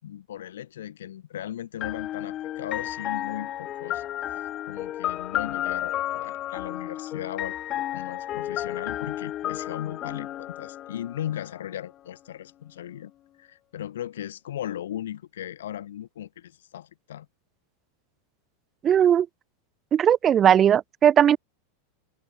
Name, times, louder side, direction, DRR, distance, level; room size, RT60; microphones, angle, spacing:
voice 1, 0.0-7.6 7.9-13.1 13.4-17.3, left 11 dB, 80° left, 7.1 m, -37 dB
sound 1, 1.8-11.6, left 13 dB, 40° left, 3.2 m, -32 dB
voice 2, 18.8-19.3 19.9-21.4, right 9 dB, 30° right, 4.4 m, -18 dB
hypercardioid pair, 105°, 0 cm